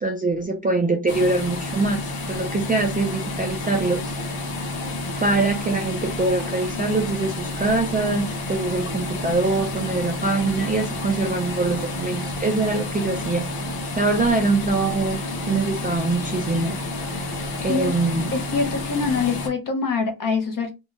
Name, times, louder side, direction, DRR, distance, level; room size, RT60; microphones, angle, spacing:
voice 1, 0.0-2.0 2.3-4.1 5.2-13.5 14.0-15.2 15.5-16.8 17.6-18.3, right 3 dB, 20° right, 0.3 m, -23 dB
sound 1, 1.1-19.5, left 2 dB, 90° left, 0.9 m, -30 dB
voice 2, 18.3-20.7, left 4 dB, 40° left, 0.7 m, -24 dB
2.6 x 2.2 x 3.0 m
cardioid pair, 120°, 49 cm